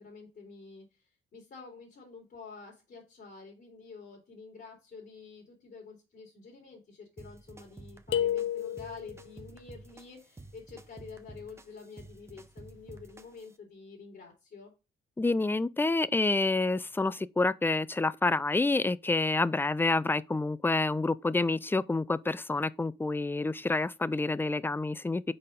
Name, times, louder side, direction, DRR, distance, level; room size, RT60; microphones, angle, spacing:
voice 1, 0.0-14.7, left 4 dB, 55° left, 3.1 m, -48 dB
sound 1, 7.2-13.6, right 2 dB, 15° right, 0.8 m, -51 dB
sound 2, 8.1-9.2, left 10 dB, 70° left, 0.7 m, -30 dB
voice 2, 15.2-25.2, left 3 dB, 10° left, 0.4 m, -28 dB
5.5 x 4.5 x 5.2 m
cardioid pair, 90°, 20 cm